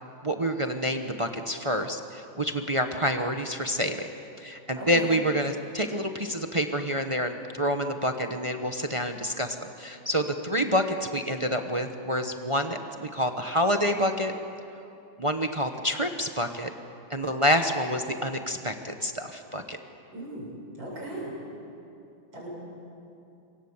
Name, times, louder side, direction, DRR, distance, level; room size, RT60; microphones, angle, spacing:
voice 1, 0.2-4.1 4.4-14.3 15.2-16.7 17.1-19.8, equal, 25° right, 5 dB, 0.7 m, -28 dB
voice 2, 4.7-5.1 20.1-20.5 20.8-21.3 22.3-22.5, right 1 dB, 70° right, -4 dB, 8.2 m, -37 dB
27.0 x 24.0 x 7.3 m, 2.7 s
omnidirectional pair, 2.2 m